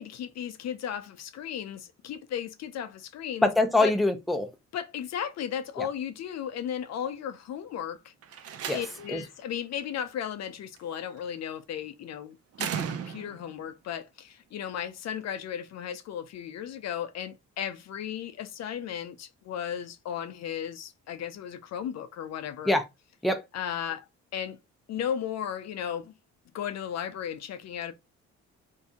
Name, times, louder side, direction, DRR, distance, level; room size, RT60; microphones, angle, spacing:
voice 1, 0.0-3.5 3.8-3.9 4.7-8.1 8.7-22.7 23.5-24.0 24.3-24.6 24.9-26.1 26.5-27.9, left 9 dB, 60° left, 0.5 m, -35 dB
voice 2, 3.4-4.5 5.8-5.9 8.7-8.8 9.1-9.2 22.7-22.8 23.2-23.4, left 2 dB, ahead, 0.5 m, -24 dB
Slam, 8.2-9.3 10.8-11.2 12.5-13.5, right 8 dB, 55° right, 0.5 m, -36 dB
2.6 x 2.6 x 3.4 m
cardioid pair, 90°, 30 cm